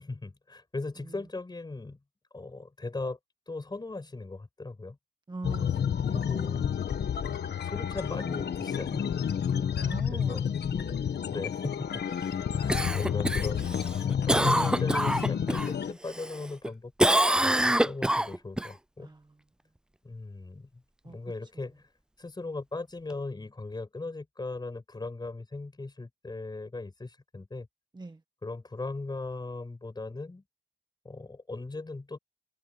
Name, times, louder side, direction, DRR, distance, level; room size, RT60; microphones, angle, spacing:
voice 1, 0.0-2.0 2.3-3.2 3.5-5.0 6.0-6.7 7.6-9.1 10.1-10.5 11.2-12.1 12.5-17.2 17.6-19.1 20.0-21.9 22.2-27.7 28.4-30.4 31.0-32.2, left 3 dB, 25° left, 6.2 m, -38 dB
voice 2, 5.3-6.0 7.0-7.1 9.7-11.0 19.0-19.2 21.0-21.2 27.9-28.2, right 3 dB, 25° right, 1.5 m, -42 dB
sound 1, 5.4-15.9, left 8 dB, 70° left, 1.5 m, -30 dB
Cough, 12.7-15.7 16.1-16.7 17.0-18.7 23.1-23.2, right 1 dB, 5° right, 0.4 m, -26 dB
wide cardioid pair, 130°, 18 cm